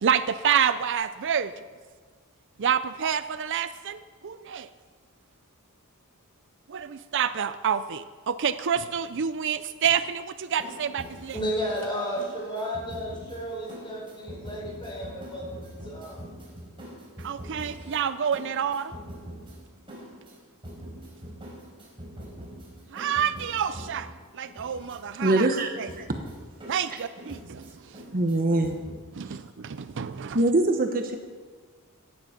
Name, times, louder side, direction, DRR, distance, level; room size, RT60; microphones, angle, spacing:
voice 1, 0.0-1.5 2.6-4.7 6.7-11.4 17.2-19.0 22.9-25.5 25.8-25.9 26.7-27.7 29.1-30.4, right 8 dB, 55° right, 12 dB, 0.5 m, -28 dB
sound 1, 10.5-29.0, equal, 25° right, 4.4 m, -44 dB
voice 2, 11.3-16.2, equal, 20° left, -3 dB, 4.9 m, -33 dB
voice 3, 25.2-26.1 26.9-27.0 28.1-28.8 29.3-29.4 30.3-31.2, right 2 dB, 40° right, 5 dB, 1.1 m, -24 dB
17.0 x 11.5 x 5.9 m, 1.5 s
head